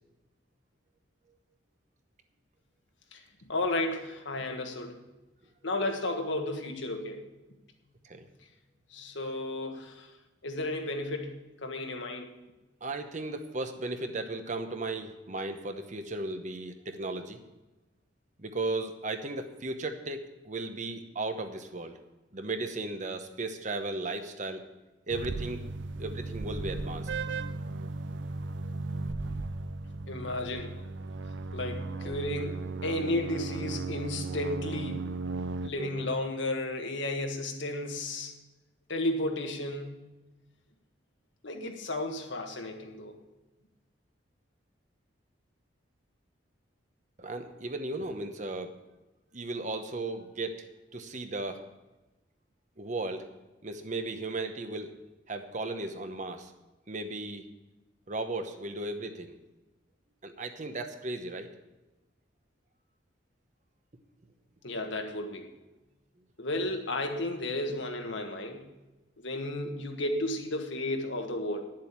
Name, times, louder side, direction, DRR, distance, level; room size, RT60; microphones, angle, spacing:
voice 1, 3.1-5.0 5.6-7.2 8.9-10.1 10.4-11.4 11.6-12.3 30.1-30.8 31.5-35.1 35.6-38.3 38.9-40.0 41.4-43.2 64.6-65.5 66.4-68.6 69.2-71.6, left 1 dB, 70° left, 4 dB, 1.5 m, -33 dB
voice 2, 12.8-17.4 18.4-22.0 22.3-24.6 25.1-25.6 26.0-27.1 32.0-32.1 35.8-36.1 47.2-48.8 49.3-50.7 50.9-51.6 52.8-53.2 53.6-54.9 55.3-56.5 56.9-57.4 58.1-59.3 60.2-61.5, right 2 dB, 40° right, 7 dB, 1.0 m, -35 dB
sound 1, 25.1-35.7, right 3 dB, 65° right, 0.5 m, -36 dB
10.5 x 7.6 x 7.4 m, 1.1 s
head